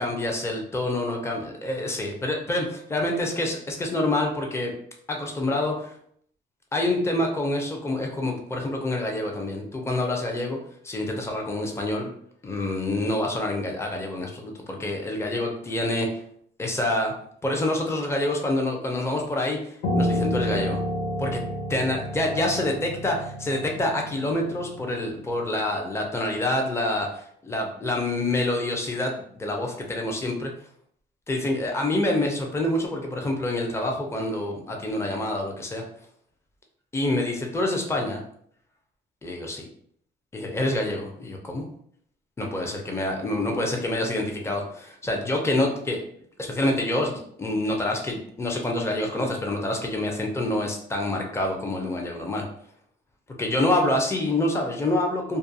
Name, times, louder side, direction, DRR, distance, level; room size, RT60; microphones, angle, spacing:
voice 1, 0.0-4.7 5.1-5.9 6.7-10.6 10.8-12.1 12.4-16.1 16.6-17.1 17.4-20.8 21.2-21.4 21.7-30.5 31.3-35.8 36.9-38.2 39.2-39.7 40.3-41.6 42.4-46.0 46.4-52.5 53.4-55.4, left 1 dB, 15° left, 1 dB, 0.5 m, -27 dB
Piano, 19.8-25.1, equal, 80° left, 0.7 m, -29 dB
2.4 x 2.2 x 2.6 m, 0.65 s
cardioid pair, 90°, 20 cm